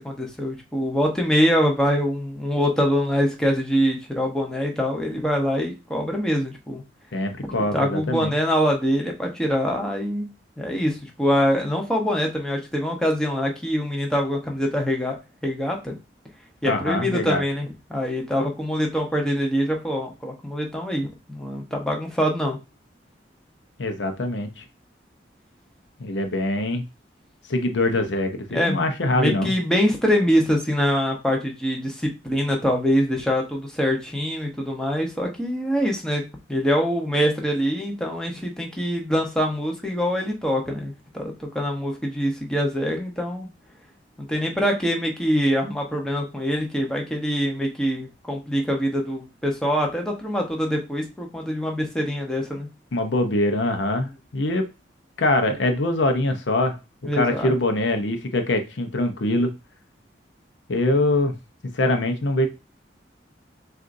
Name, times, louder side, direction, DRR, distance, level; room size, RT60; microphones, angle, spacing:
voice 1, 0.0-6.8 7.7-10.3 10.6-15.2 15.4-15.9 16.6-22.6 28.5-36.2 36.5-43.5 44.2-52.7 57.0-57.5, equal, 5° left, 0 dB, 0.9 m, -24 dB
voice 2, 7.1-8.3 16.6-17.4 23.8-24.6 26.0-26.8 27.5-29.5 52.9-54.7 55.2-56.8 57.2-59.5 60.7-61.3 61.6-62.5, left 1 dB, 80° left, 6 dB, 0.7 m, -23 dB
6.4 x 2.5 x 2.6 m, 0.27 s
head